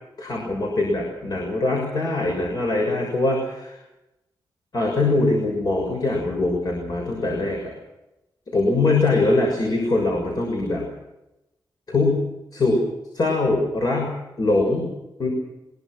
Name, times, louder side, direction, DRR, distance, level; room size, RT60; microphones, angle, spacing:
voice 1, 0.2-3.8 4.7-7.6 8.5-10.9 11.9-12.2 12.5-12.8 13.1-14.9 15.2-15.3, left 2 dB, 50° left, 0 dB, 6.7 m, -22 dB
24.0 x 22.5 x 6.4 m, 0.93 s
wide cardioid pair, 170°, 9 cm